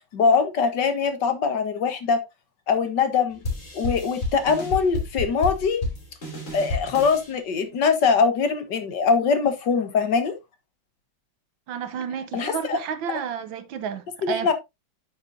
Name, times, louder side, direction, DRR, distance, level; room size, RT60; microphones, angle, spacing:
voice 1, 0.1-2.2 2.7-3.4 3.7-5.8 6.5-10.3 12.3-12.8 14.2-14.5, left 5 dB, 65° left, 1.9 m, -22 dB
sound 1, 3.4-7.3, left 2 dB, 40° left, 3.2 m, -30 dB
voice 2, 11.7-14.5, right 8 dB, 75° right, 1.6 m, -31 dB
8.9 x 7.6 x 2.6 m
omnidirectional pair, 2.1 m